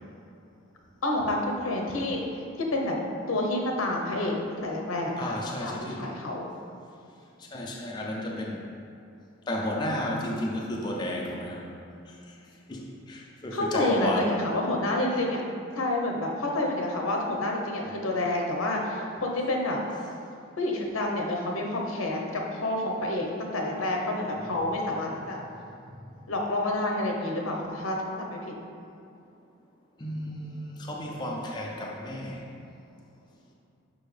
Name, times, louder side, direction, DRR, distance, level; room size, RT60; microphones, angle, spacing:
voice 1, 1.0-2.2 2.6-3.0 3.3-5.3 5.6-6.5 13.5-15.4 15.8-19.8 20.6-25.4 26.3-28.4, left 1 dB, 80° left, 0 dB, 0.9 m, -28 dB
voice 2, 5.2-6.1 7.4-8.6 9.5-11.8 12.1-12.2 12.7-14.3 15.1-15.2 30.0-32.5, left 1 dB, 20° left, -2 dB, 0.5 m, -33 dB
6.3 x 5.4 x 3.4 m, 2.6 s
head